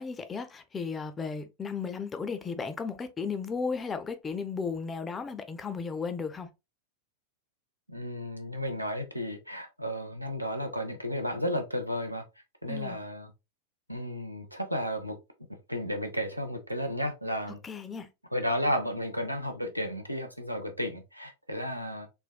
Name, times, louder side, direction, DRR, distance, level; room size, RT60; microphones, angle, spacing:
voice 1, 0.0-6.5 12.7-13.0 17.6-18.1, left 5 dB, 20° left, 0.4 m, -35 dB
voice 2, 7.9-12.2 12.6-13.3 13.9-15.2 15.7-17.6 18.3-22.1, equal, 90° right, 0.5 m, -33 dB
3.5 x 2.2 x 2.2 m
figure-of-eight pair, 90°, 0 cm